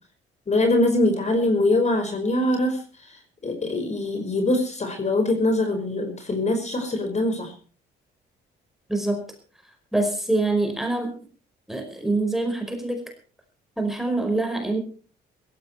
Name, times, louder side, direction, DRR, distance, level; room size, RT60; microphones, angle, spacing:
voice 1, 0.5-2.8 3.4-7.5, left 2 dB, 35° left, 6 dB, 5.2 m, -23 dB
voice 2, 8.9-9.2 9.9-11.2 11.7-13.0 13.8-14.8, right 2 dB, ahead, 4 dB, 5.0 m, -25 dB
17.0 x 15.0 x 4.5 m, 0.38 s
cardioid pair, 90°, 20 cm